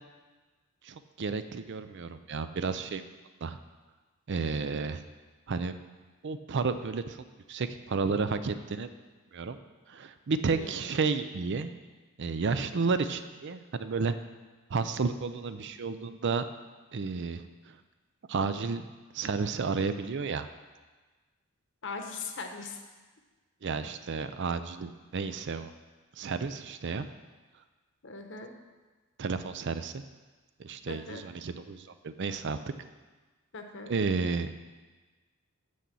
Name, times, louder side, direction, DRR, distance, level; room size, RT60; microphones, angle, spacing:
voice 1, 0.8-3.0 3.4-3.6 4.3-5.0 5.5-5.8 6.2-7.2 7.5-8.9 9.3-9.6 9.9-11.7 12.2-14.1 14.7-16.4 16.9-17.8 18.3-18.9 19.1-20.5 23.6-25.7 26.2-27.1 29.2-30.0 30.6-32.6 33.8-34.5, right 4 dB, 55° right, 11 dB, 0.5 m, -32 dB
voice 2, 10.5-10.8 21.8-22.8 28.0-28.5 30.9-31.3 33.5-33.9, left 4 dB, 60° left, 5 dB, 1.0 m, -40 dB
6.9 x 6.4 x 7.5 m, 1.3 s
head